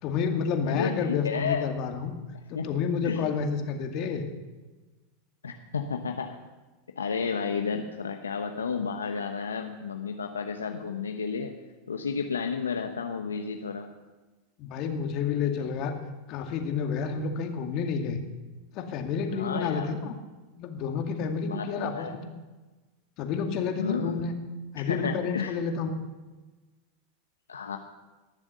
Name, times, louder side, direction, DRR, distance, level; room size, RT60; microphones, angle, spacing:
voice 1, 0.0-2.1 2.5-4.3 14.6-15.9 16.3-18.2 18.7-20.2 20.6-22.3 23.2-24.3 24.7-26.0, left 6 dB, 50° left, 4 dB, 2.2 m, -30 dB
voice 2, 0.7-1.7 2.5-2.7 3.0-3.2 5.4-6.4 7.0-11.5 11.9-13.9 19.3-19.9 21.4-22.2 23.8-24.2 24.9-25.6 27.5-27.8, left 5 dB, 90° left, 5 dB, 0.9 m, -32 dB
20.0 x 7.3 x 6.6 m, 1.2 s
hypercardioid pair, 95°, 0 cm